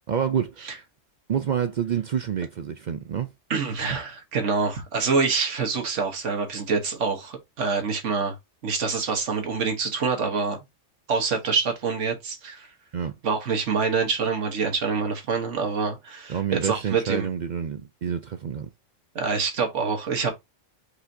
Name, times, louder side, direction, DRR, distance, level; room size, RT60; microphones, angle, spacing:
voice 1, 0.1-0.8 1.3-3.3 12.9-13.1 16.3-18.7, right 8 dB, 55° right, 0.5 m, -28 dB
voice 2, 3.5-8.3 8.6-10.6 11.1-12.7 13.2-17.3 19.1-20.3, right 5 dB, 75° right, 1.5 m, -26 dB
4.9 x 4.0 x 2.6 m
omnidirectional pair, 1.3 m